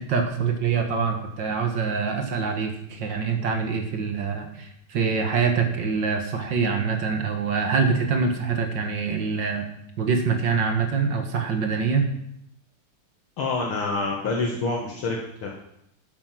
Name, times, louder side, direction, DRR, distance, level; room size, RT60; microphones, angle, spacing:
voice 1, 0.0-9.6 10.0-12.1, right 5 dB, 60° right, 4 dB, 2.0 m, -25 dB
voice 2, 13.4-15.5, left 3 dB, 70° left, -1 dB, 2.4 m, -27 dB
12.5 x 7.6 x 5.8 m, 0.76 s
omnidirectional pair, 2.4 m